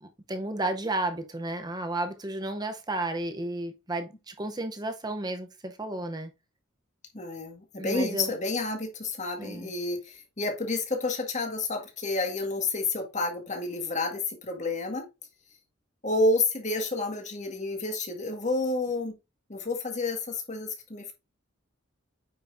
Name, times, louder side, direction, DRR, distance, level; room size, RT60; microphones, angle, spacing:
voice 1, 0.0-6.3 7.8-8.3 9.4-9.7, right 2 dB, 20° right, 0.8 m, -32 dB
voice 2, 7.1-15.1 16.0-19.1 19.5-21.1, left 2 dB, 35° left, 1.9 m, -30 dB
9.1 x 5.7 x 2.6 m
head